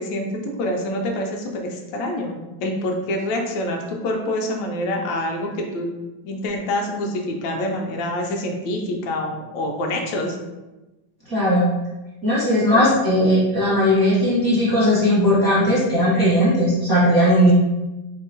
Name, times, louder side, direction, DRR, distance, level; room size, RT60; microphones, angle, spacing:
voice 1, 0.0-5.9 6.2-10.4 12.7-12.9, left 1 dB, 70° left, 2 dB, 1.3 m, -26 dB
voice 2, 11.3-11.7 12.2-17.5, equal, 10° right, -10 dB, 1.2 m, -17 dB
4.5 x 2.8 x 2.7 m, 1.1 s
omnidirectional pair, 2.2 m